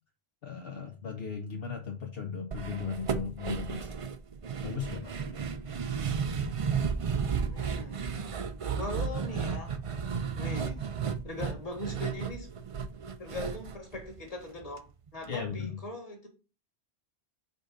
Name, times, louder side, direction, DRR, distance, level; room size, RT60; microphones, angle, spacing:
voice 1, 0.4-3.9 4.6-5.5 15.3-15.8, left 6 dB, 65° left, 1.0 m, -37 dB
sound 1, 2.5-14.8 15.1-15.2 15.5-15.6, right 6 dB, 45° right, 0.5 m, -33 dB
voice 2, 7.5-8.1 8.8-9.8 10.4-10.8 11.2-12.5 13.2-16.3, left 1 dB, 35° left, 1.7 m, -40 dB
5.2 x 3.9 x 5.1 m
omnidirectional pair, 1.1 m